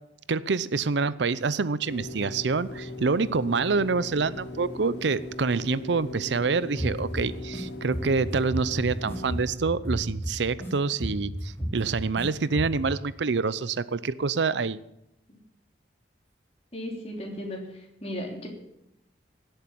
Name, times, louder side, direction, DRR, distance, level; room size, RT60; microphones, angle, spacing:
voice 1, 0.3-14.8, right 4 dB, 85° right, 17 dB, 0.6 m, -26 dB
sound 1, 1.8-9.5, left 1 dB, 80° left, 2.4 m, -39 dB
sound 2, 6.8-7.6 7.9-10.7 11.0-12.2 12.5-12.9, equal, 15° left, 3.4 m, -33 dB
voice 2, 16.7-18.5, left 1 dB, 35° left, 0 dB, 3.4 m, -36 dB
17.0 x 8.0 x 8.5 m, 0.84 s
head